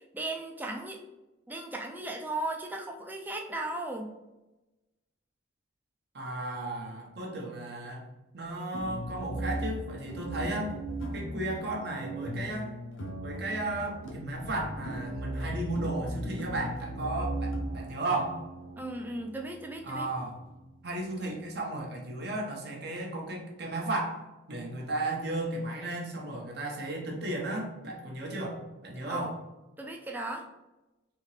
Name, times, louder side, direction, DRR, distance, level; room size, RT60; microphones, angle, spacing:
voice 1, 0.1-1.0 1.5-4.1 18.8-20.1 29.1-29.3 29.8-30.5, right 2 dB, 10° right, 2 dB, 0.3 m, -36 dB
voice 2, 6.1-8.0 8.3-10.7 11.1-12.7 13.2-18.4 19.8-20.4 20.8-24.2 24.5-29.4, right 2 dB, 55° right, -1 dB, 0.8 m, -34 dB
sound 1, 8.7-21.6, right 1 dB, 85° left, 0.7 m, -38 dB
3.5 x 2.8 x 3.1 m, 1.0 s
head